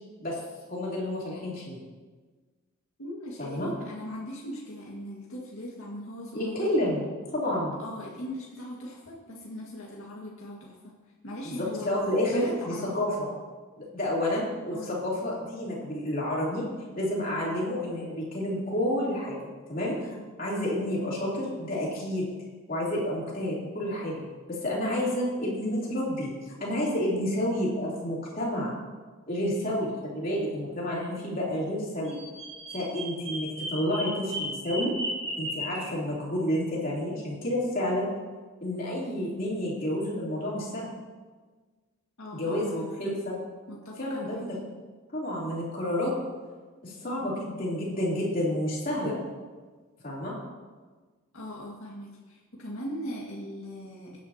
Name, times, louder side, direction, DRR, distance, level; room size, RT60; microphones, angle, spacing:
voice 1, 0.7-1.8 3.4-3.7 6.3-7.8 11.4-13.3 13.8-16.6 16.9-19.4 19.7-20.1 20.4-22.3 22.7-24.2 24.5-26.3 26.6-28.7 29.3-32.2 32.7-34.9 35.4-38.1 38.6-40.9 42.3-43.3 44.0-44.6 45.1-46.1 46.8-49.2 50.0-50.3, left 1 dB, 40° left, -6 dB, 3.2 m, -30 dB
voice 2, 3.0-6.7 7.8-10.9 11.2-11.9 12.2-12.8 14.7-15.0 42.2-43.2 43.7-44.4 51.3-54.2, equal, 75° left, -4 dB, 1.8 m, -40 dB
Bird vocalization bird call bird song, 32.0-35.9, right 1 dB, 30° right, 3.3 m, -35 dB
16.5 x 9.6 x 2.9 m, 1.4 s
head